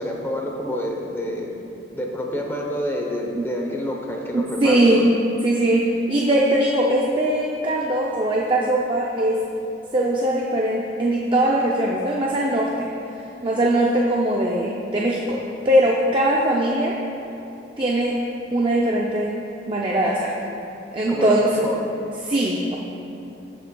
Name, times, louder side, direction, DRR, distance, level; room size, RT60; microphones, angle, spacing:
voice 1, 0.0-1.5 1.9-5.0 21.1-21.9, equal, 10° left, 0 dB, 0.7 m, -28 dB
voice 2, 4.3-5.1 5.4-9.5 9.9-12.9 13.4-17.0 17.8-18.2 18.5-19.4 19.7-20.4 20.9-21.6 22.2-22.8, right 1 dB, 25° right, -3 dB, 0.5 m, -21 dB
14.0 x 6.8 x 2.3 m, 2.9 s
head